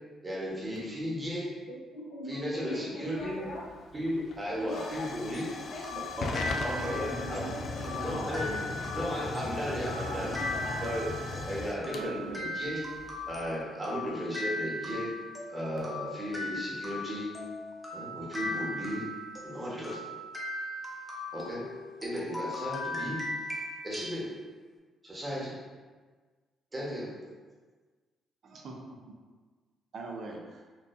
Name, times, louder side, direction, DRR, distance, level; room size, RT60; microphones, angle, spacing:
voice 1, 0.2-1.5 2.3-3.4 3.9-5.5 6.2-6.3 6.6-7.4 8.0-8.5 8.9-10.3 10.8-11.1 11.5-12.8 13.3-15.1 15.5-17.3 17.9-19.0 19.4-20.0 21.3-21.6 22.0-23.2 23.8-24.3 25.0-25.5 26.7-27.1, equal, 25° right, -5 dB, 1.2 m, -35 dB
voice 2, 1.9-3.6 4.6-5.0 5.3-5.9 6.4-8.6 10.1-10.8, left 1 dB, 90° left, -5 dB, 1.0 m, -41 dB
Hiss / Fire / Tick, 3.1-13.5, left 3 dB, 60° left, 0.3 m, -39 dB
sound 1, 5.3-24.2, left 1 dB, 5° left, 0.8 m, -39 dB
voice 3, 5.9-8.8 9.4-9.5 11.9-12.5 28.4-28.8 29.9-30.6, right 3 dB, 60° right, 0 dB, 0.6 m, -42 dB
4.4 x 2.6 x 2.6 m, 1.4 s
cardioid pair, 90°, 0 cm